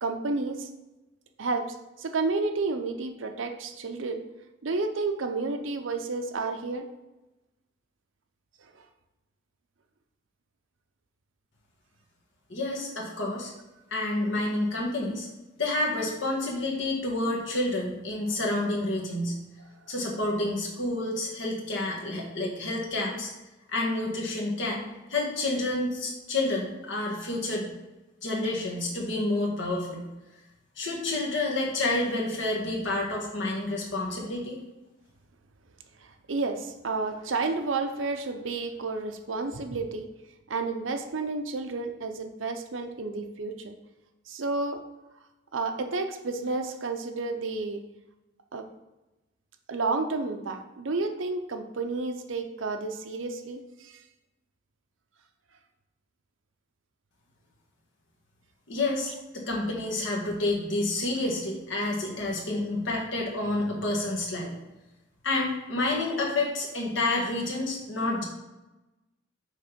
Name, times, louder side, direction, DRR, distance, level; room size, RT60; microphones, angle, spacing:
voice 1, 0.0-0.7 1.4-4.2 4.6-6.9 36.0-40.1 40.5-43.8 44.3-44.8 45.5-47.8 48.5-48.7 49.7-54.0, right 3 dB, 85° right, 6 dB, 0.7 m, -31 dB
voice 2, 12.5-13.5 13.9-15.3 15.6-19.3 19.9-23.3 23.7-24.8 25.1-27.7 28.2-30.1 30.8-34.6 58.7-64.5 65.2-68.2, left 2 dB, 75° left, -2 dB, 1.6 m, -29 dB
6.5 x 3.2 x 5.2 m, 1.0 s
head